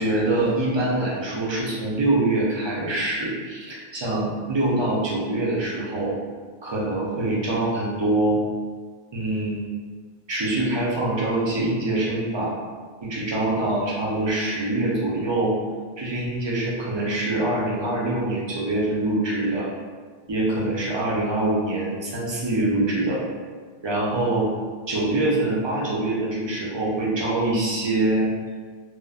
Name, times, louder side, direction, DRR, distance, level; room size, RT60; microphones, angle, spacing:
voice 1, 0.0-6.1 6.6-8.4 9.1-9.7 10.3-12.5 13.0-15.5 16.0-19.7 20.3-23.2 23.8-24.5 24.9-28.3, right 2 dB, 40° right, -5 dB, 0.4 m, -24 dB
3.0 x 2.0 x 2.3 m, 1.5 s
omnidirectional pair, 1.0 m